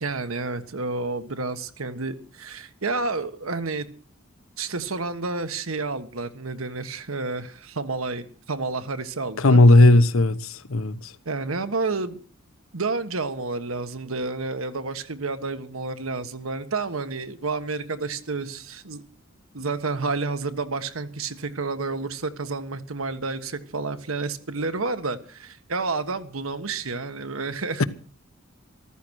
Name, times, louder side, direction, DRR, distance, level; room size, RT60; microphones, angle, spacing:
voice 1, 0.0-3.9 4.6-9.6 11.2-12.2 12.7-19.0 19.5-27.8, right 3 dB, 80° right, 1.4 m, -30 dB
voice 2, 9.4-11.0, left 2 dB, 80° left, 1.0 m, -16 dB
14.5 x 13.5 x 6.4 m
head